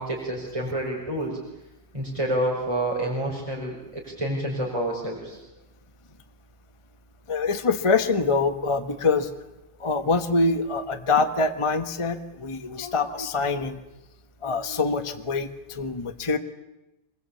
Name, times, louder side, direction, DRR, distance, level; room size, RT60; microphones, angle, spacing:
voice 1, 0.0-1.4 1.9-5.4, right 1 dB, 15° right, -3 dB, 5.1 m, -28 dB
voice 2, 7.3-9.3 9.8-13.8 14.4-16.4, left 4 dB, 20° left, 7 dB, 1.1 m, -25 dB
25.5 x 21.5 x 8.6 m, 0.95 s
omnidirectional pair, 2.0 m